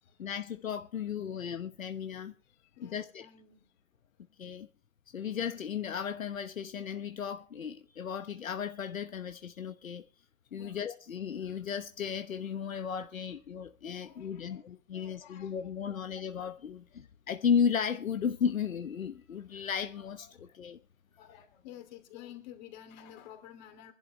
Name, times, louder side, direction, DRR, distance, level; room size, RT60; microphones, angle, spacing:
voice 1, 0.2-2.3 2.8-3.3 4.4-4.7 5.1-10.0 10.5-20.8, left 7 dB, 80° left, 1.1 m, -34 dB
voice 2, 2.4-3.6 10.5-10.7 13.9-16.0 19.5-19.6 20.3-20.6 21.2-23.9, left 10 dB, 35° left, 2.8 m, -52 dB
24.0 x 11.5 x 3.3 m
hypercardioid pair, 150°, 40 cm